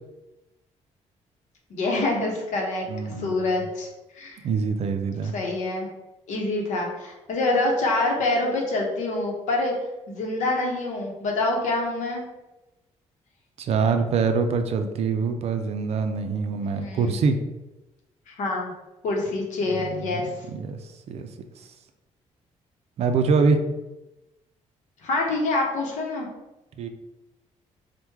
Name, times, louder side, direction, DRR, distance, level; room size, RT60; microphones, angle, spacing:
voice 1, 1.7-3.9 4.1-4.4 5.3-5.9 6.3-9.7 10.1-12.2 16.6-17.2 18.3-18.7 19.0-20.4 25.0-26.3, left 2 dB, 75° left, 0 dB, 0.8 m, -26 dB
voice 2, 2.9-3.3 4.4-5.3 13.6-17.4 19.8-20.2 20.5-20.8 21.1-21.3 23.0-23.6 26.8-26.9, right 5 dB, 55° right, 7 dB, 0.4 m, -24 dB
3.0 x 2.1 x 3.4 m, 0.99 s
cardioid pair, 110°, 13 cm